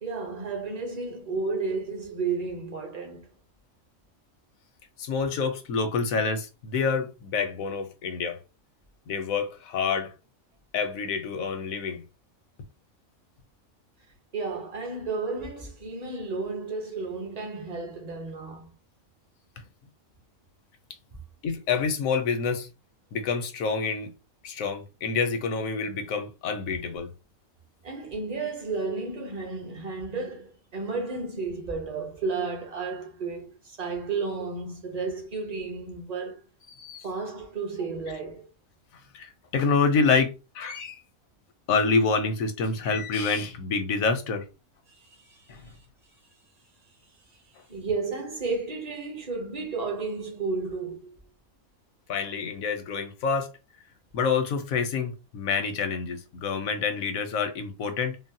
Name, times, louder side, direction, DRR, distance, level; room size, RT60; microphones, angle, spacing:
voice 1, 0.0-3.3 14.3-18.7 27.8-36.4 37.0-38.5 45.0-45.5 47.7-51.2, right 4 dB, 35° right, 0.8 m, -32 dB
voice 2, 5.0-8.4 9.1-10.1 10.7-12.0 19.6-19.7 21.4-22.7 23.1-24.1 24.4-27.1 36.8-37.0 39.1-41.0 41.7-44.5 45.5-45.6 52.1-53.5 54.1-58.1, left 5 dB, 90° left, 1.1 m, -27 dB
3.8 x 2.0 x 2.7 m
omnidirectional pair, 1.4 m